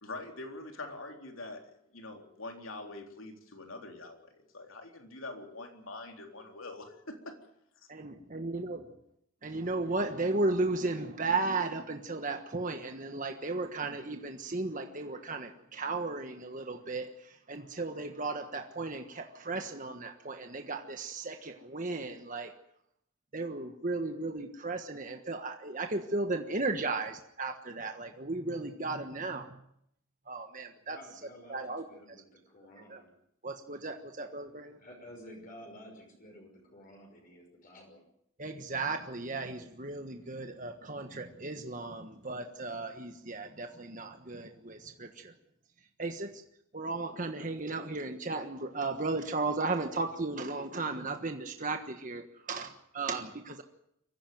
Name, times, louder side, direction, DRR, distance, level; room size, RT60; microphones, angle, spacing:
voice 1, 0.0-7.4, left 2 dB, 75° left, 4 dB, 3.7 m, -44 dB
voice 2, 7.9-8.8 9.4-22.5 23.3-29.5 30.3-31.0 31.5-32.2 32.9-33.0 33.4-34.8 38.4-45.3 46.0-46.4 46.7-53.6, right 3 dB, 40° right, 5 dB, 1.4 m, -35 dB
voice 3, 30.8-33.1 34.8-38.0, equal, 40° left, 1 dB, 5.8 m, -52 dB
24.0 x 15.5 x 9.4 m, 0.76 s
head